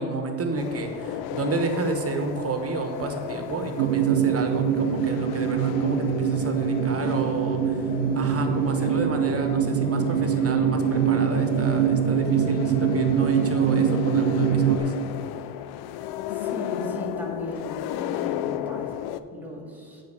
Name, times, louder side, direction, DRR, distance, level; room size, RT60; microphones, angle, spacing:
voice 1, 0.0-7.8 8.1-14.9, right 3 dB, 30° right, 5 dB, 1.2 m, -31 dB
sound 1, 0.6-19.2, left 11 dB, 60° left, 0.5 m, -34 dB
sound 2, 3.8-14.8, right 8 dB, 85° right, 0.7 m, -23 dB
voice 2, 16.3-20.0, left 1 dB, 5° right, 0 dB, 1.9 m, -36 dB
8.5 x 3.9 x 6.7 m, 2.1 s
hypercardioid pair, 70°, 46 cm